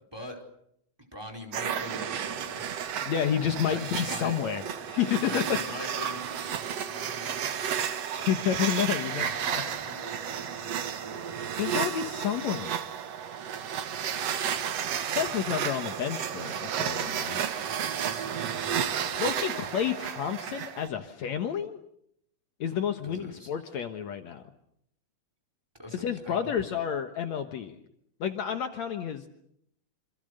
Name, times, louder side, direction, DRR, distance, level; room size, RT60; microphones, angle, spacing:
voice 1, 1.1-2.7 3.5-4.4 5.0-7.4 9.1-11.4 17.7-19.3 23.0-23.5 25.8-26.6, left 1 dB, 5° right, 4 dB, 4.4 m, -44 dB
sound 1, 1.5-20.9, right 8 dB, 55° right, 2.3 m, -32 dB
voice 2, 3.1-4.6 4.9-5.8 8.1-9.6 11.6-12.7 15.0-17.4 19.2-21.8 22.6-24.5 25.9-27.8 28.2-29.3, left 8 dB, 65° left, 7 dB, 2.4 m, -30 dB
28.0 x 26.5 x 6.7 m, 0.73 s
omnidirectional pair, 3.7 m